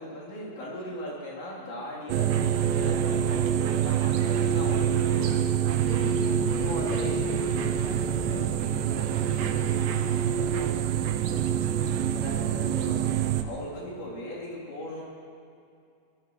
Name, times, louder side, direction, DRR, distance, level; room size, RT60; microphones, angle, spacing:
voice 1, 0.0-5.4 6.6-7.1 12.1-13.2 13.4-15.0, left 1 dB, 90° left, -6 dB, 5.8 m, -38 dB
sound 1, 2.1-13.4, right 9 dB, 85° right, 3.0 m, -26 dB
voice 2, 5.9-11.6, left 2 dB, 50° left, -8 dB, 5.2 m, -41 dB
22.5 x 19.0 x 3.2 m, 2.5 s
omnidirectional pair, 5.0 m